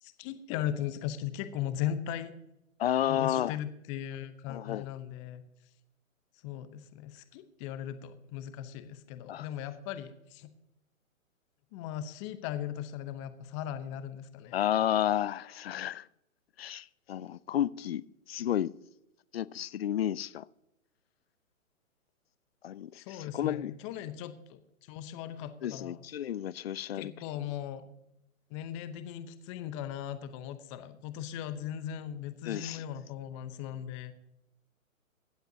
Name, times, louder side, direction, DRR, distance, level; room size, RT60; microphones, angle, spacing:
voice 1, 0.0-2.3 3.1-5.4 6.4-10.5 11.7-14.6 23.0-26.0 26.9-27.8 28.5-34.1, left 10 dB, 20° left, 0.9 m, -38 dB
voice 2, 2.8-3.6 4.5-4.9 9.3-9.5 14.5-16.1 16.6-18.7 19.3-20.5 22.6-23.7 25.6-27.1 32.5-32.8, left 11 dB, 50° left, 0.5 m, -31 dB
23.5 x 7.9 x 2.8 m
figure-of-eight pair, 130°, 42 cm